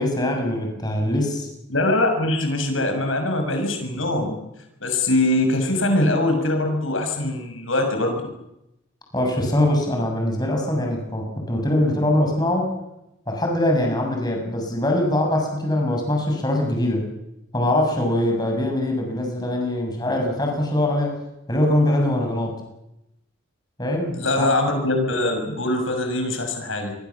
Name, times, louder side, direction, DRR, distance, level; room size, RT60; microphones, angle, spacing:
voice 1, 0.0-1.5 9.1-12.7 13.3-17.1 17.5-21.1 21.5-22.6 23.8-24.5, left 1 dB, 20° left, 1 dB, 7.1 m, -22 dB
voice 2, 1.7-4.4 4.8-8.2 24.2-26.9, left 1 dB, 75° left, 4 dB, 6.9 m, -22 dB
29.0 x 23.0 x 7.3 m, 0.87 s
head